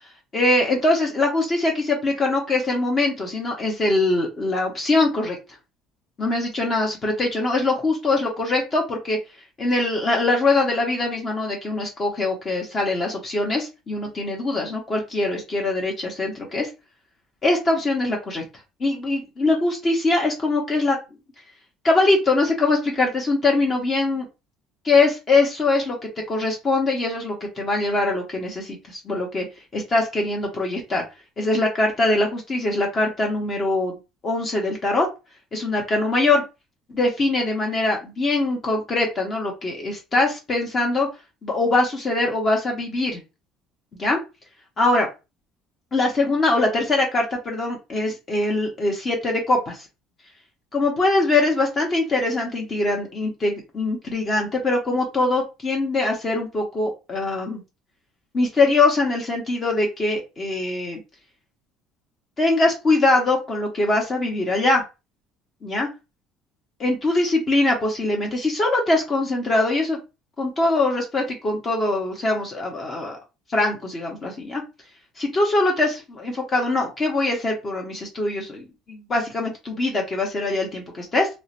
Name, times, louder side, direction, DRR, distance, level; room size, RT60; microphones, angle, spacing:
voice 1, 0.3-5.4 6.2-9.2 9.6-16.7 17.4-18.4 18.8-21.0 21.8-24.3 24.9-26.0 26.3-29.4 29.7-31.0 31.4-34.0 34.2-35.1 35.5-36.4 36.9-41.1 41.4-43.2 44.0-44.2 44.8-45.1 45.9-49.8 50.7-57.6 58.3-61.0 62.4-64.8 65.6-65.9 66.8-70.0 70.4-73.2 73.5-74.6 75.2-81.3, left 2 dB, 40° left, 0 dB, 0.9 m, -22 dB
2.7 x 2.1 x 2.5 m, 0.27 s
supercardioid pair, 80°, 0 cm